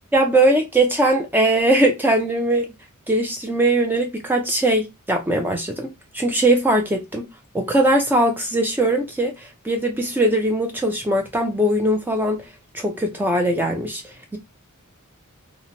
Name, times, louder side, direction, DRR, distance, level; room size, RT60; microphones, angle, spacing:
voice 1, 0.1-2.7 3.1-7.3 7.5-12.5 12.7-14.4, right 1 dB, 10° right, 0.4 m, -20 dB
2.7 x 2.1 x 2.7 m
head